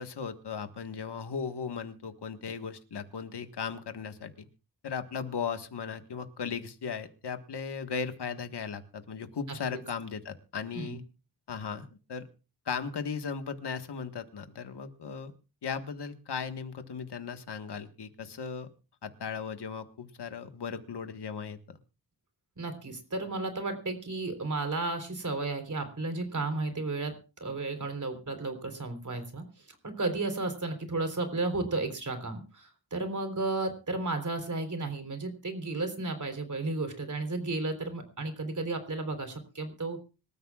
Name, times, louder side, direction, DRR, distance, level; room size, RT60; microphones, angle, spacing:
voice 1, 0.0-4.5 4.8-11.0 11.5-12.3 12.6-15.3 15.6-18.7 19.0-21.8, left 6 dB, 80° left, 8 dB, 1.6 m, -37 dB
voice 2, 22.6-27.1 27.4-40.0, right 3 dB, 45° right, 7 dB, 3.8 m, -33 dB
26.0 x 14.0 x 2.4 m, 0.33 s
wide cardioid pair, 110°, 40 cm